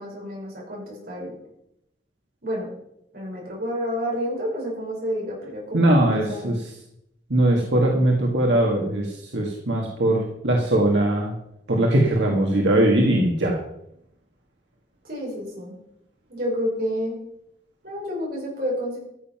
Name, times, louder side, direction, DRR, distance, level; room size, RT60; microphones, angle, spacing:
voice 1, 0.0-1.3 2.4-2.7 3.1-6.5 15.0-15.7 16.3-17.2 17.8-19.0, equal, 55° right, -3 dB, 6.0 m, -29 dB
voice 2, 5.7-6.6 7.3-11.3 11.7-13.6, right 1 dB, 85° right, -1 dB, 1.8 m, -20 dB
14.0 x 7.5 x 5.8 m, 0.80 s
head